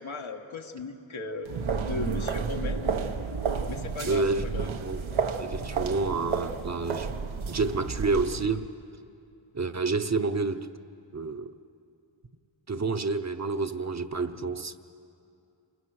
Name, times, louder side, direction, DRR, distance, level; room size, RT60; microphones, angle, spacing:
voice 1, 0.0-1.5 1.8-3.0 3.6-4.7, left 4 dB, 90° left, 3 dB, 1.7 m, -37 dB
sound 1, 1.5-8.5, right 5 dB, 85° right, 1.2 m, -31 dB
voice 2, 4.0-5.0 5.4-7.1 7.5-8.7 9.5-10.7 11.1-11.5 12.7-14.7, right 3 dB, 35° right, 8 dB, 0.8 m, -29 dB
28.0 x 20.5 x 6.5 m, 2.6 s
wide cardioid pair, 85°, 46 cm